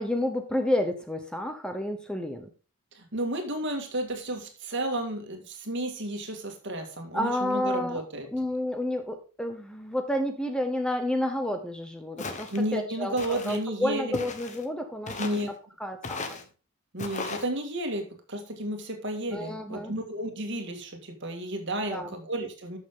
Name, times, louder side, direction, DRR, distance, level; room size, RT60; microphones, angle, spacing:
voice 1, 0.0-2.5 7.1-8.0 8.3-15.4 15.8-16.2 19.3-19.9 21.8-22.1, left 1 dB, 5° left, 6 dB, 0.8 m, -30 dB
voice 2, 2.9-8.3 12.5-14.1 15.2-15.5 16.9-22.8, right 1 dB, 55° right, 5 dB, 2.1 m, -32 dB
Walk footsteps, 12.2-12.6 13.2-13.6 14.1-14.7 15.1-15.5 16.0-16.4 17.0-17.5, left 3 dB, 35° left, 1.2 m, -36 dB
12.0 x 6.4 x 3.8 m, 0.35 s
head